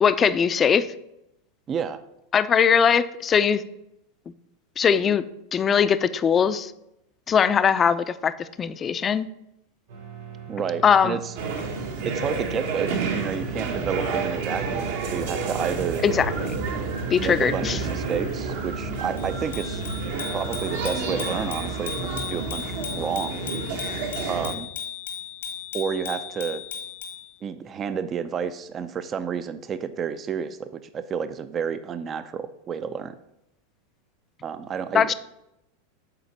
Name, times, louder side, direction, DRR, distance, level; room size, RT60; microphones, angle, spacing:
voice 1, 0.0-0.9 2.3-3.6 4.8-5.2 5.5-6.7 7.3-8.3 8.6-9.3 10.8-11.2 16.0-16.6 17.1-17.8 34.9-35.1, left 7 dB, 30° left, 14 dB, 0.4 m, -20 dB
voice 2, 1.7-2.0 10.5-11.3 12.0-16.0 17.2-19.8 20.3-23.4 24.2-24.7 25.7-26.6 27.4-33.2 34.4-35.1, right 7 dB, 30° right, 12 dB, 0.4 m, -30 dB
sound 1, 9.9-18.3, right 9 dB, 85° right, 3.1 m, -39 dB
sound 2, 11.4-24.5, right 4 dB, 70° right, 1.3 m, -30 dB
Bicycle bell, 19.2-27.3, left 8 dB, 90° left, 2.0 m, -36 dB
6.7 x 4.2 x 5.9 m, 0.84 s
hypercardioid pair, 105°, 0 cm